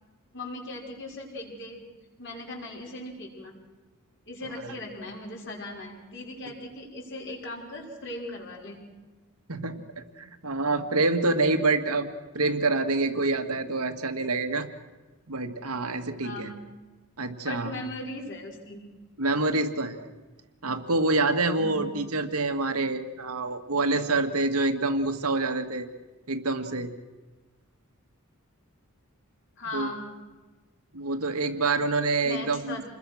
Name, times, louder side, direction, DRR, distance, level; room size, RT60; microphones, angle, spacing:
voice 1, 0.3-1.9 2.2-3.5 4.3-8.8 16.2-16.6 17.4-18.8 21.6-21.9 29.6-30.0 32.2-32.8, left 2 dB, 55° left, 0 dB, 5.9 m, -38 dB
voice 2, 9.5-12.1 12.3-14.7 15.3-16.5 17.2-17.7 19.2-20.1 20.6-25.9 26.3-26.9 29.7-29.9 30.9-32.8, right 3 dB, 85° right, 6 dB, 2.0 m, -27 dB
28.0 x 21.0 x 6.4 m, 1.2 s
head